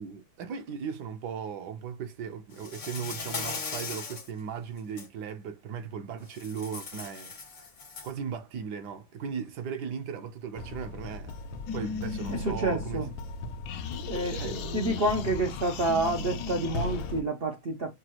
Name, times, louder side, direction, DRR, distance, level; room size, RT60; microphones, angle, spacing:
voice 1, 0.0-7.6 8.0-11.4 11.7-13.0 14.1-14.7, right 7 dB, 70° right, 1.1 m, -37 dB
Insect, 2.6-4.3 4.8-5.1 6.3-8.2, left 4 dB, 45° left, 0.7 m, -38 dB
sound 1, 10.6-17.2, left 2 dB, 85° left, 1.6 m, -38 dB
sound 2, 11.7-13.3 13.7-17.1, left 7 dB, 70° left, 1.0 m, -38 dB
voice 2, 12.3-13.1 14.1-17.9, right 2 dB, 85° right, 0.5 m, -29 dB
5.9 x 2.3 x 2.9 m
omnidirectional pair, 2.1 m